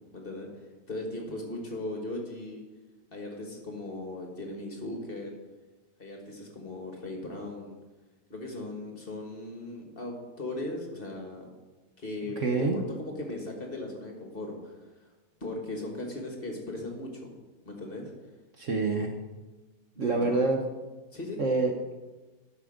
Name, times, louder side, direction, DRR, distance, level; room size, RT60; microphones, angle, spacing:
voice 1, 0.1-0.5 0.9-2.6 3.1-5.3 6.0-7.8 8.3-11.5 12.0-14.7 15.4-17.3 17.6-18.1 19.9-20.5 21.1-21.4, left 2 dB, 35° left, 1 dB, 1.6 m, -38 dB
voice 2, 12.4-12.8 18.6-19.1 20.0-20.6 21.4-21.7, right 3 dB, 55° right, 3 dB, 1.0 m, -26 dB
11.5 x 6.1 x 5.0 m, 1.2 s
omnidirectional pair, 1.8 m